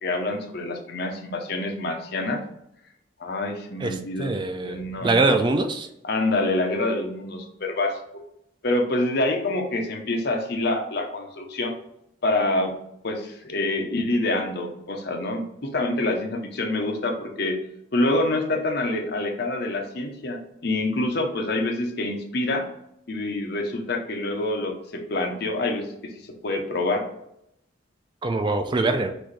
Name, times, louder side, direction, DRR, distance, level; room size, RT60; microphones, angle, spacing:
voice 1, 0.0-2.4 3.2-5.4 6.0-8.0 8.6-11.7 12.2-12.7 13.0-17.6 17.9-22.7 23.1-27.1, left 2 dB, 60° left, 3 dB, 0.8 m, -26 dB
voice 2, 3.8-5.9 28.2-29.1, right 3 dB, 25° right, 7 dB, 0.3 m, -23 dB
6.1 x 2.6 x 3.2 m, 0.78 s
head